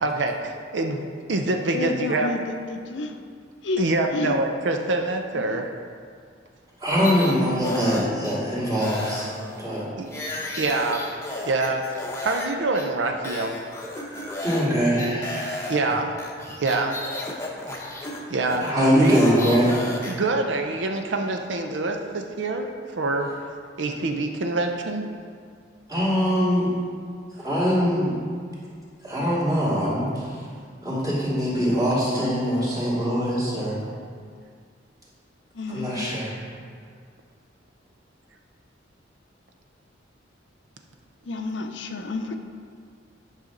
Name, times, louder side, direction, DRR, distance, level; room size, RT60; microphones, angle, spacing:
voice 1, 0.0-2.3 3.8-5.7 10.0-10.1 10.6-13.6 15.7-16.2 16.6-17.0 17.8-19.2 20.1-22.7 23.0-23.3 23.8-25.0, right 2 dB, 75° right, 4 dB, 0.6 m, -26 dB
voice 2, 1.7-3.1 3.6-3.8 4.1-4.4 5.3-5.6 31.8-33.1 35.5-35.9 41.3-42.4, left 2 dB, 70° left, 5 dB, 0.6 m, -31 dB
voice 3, 6.8-9.3 9.6-9.8 14.4-15.5 18.6-19.7 25.9-26.7 27.4-28.1 29.0-30.1 30.8-33.8 35.7-36.3, equal, 20° right, -8 dB, 2.2 m, -22 dB
sound 1, 6.9-8.4 8.7-12.5 12.7-12.9 13.2-14.7 15.0-20.1, left 2 dB, 15° left, 0.8 m, -34 dB
9.1 x 5.7 x 3.8 m, 2.1 s
head